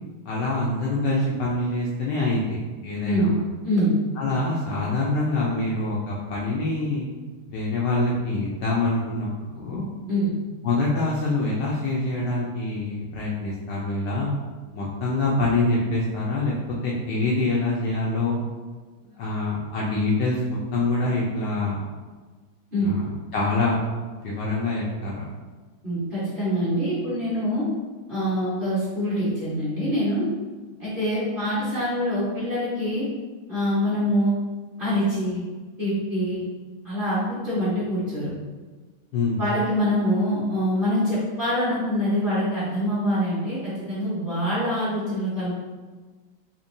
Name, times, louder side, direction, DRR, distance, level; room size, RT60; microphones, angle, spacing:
voice 1, 0.3-3.3 4.2-7.1 7.5-9.9 10.6-14.3 14.7-16.5 16.8-18.4 19.2-21.8 22.8-23.0 23.3-23.8 24.2-25.3 39.1-39.4, left 2 dB, 70° left, -5 dB, 1.1 m, -25 dB
voice 2, 3.0-3.3 3.6-3.9 10.1-10.3 22.7-22.9 25.8-27.6 28.1-30.3 30.8-33.1 33.5-34.3 34.8-35.4 35.8-36.4 36.8-38.3 39.4-45.5, equal, 30° right, -11 dB, 1.2 m, -24 dB
4.4 x 2.8 x 2.6 m, 1.3 s
omnidirectional pair, 2.2 m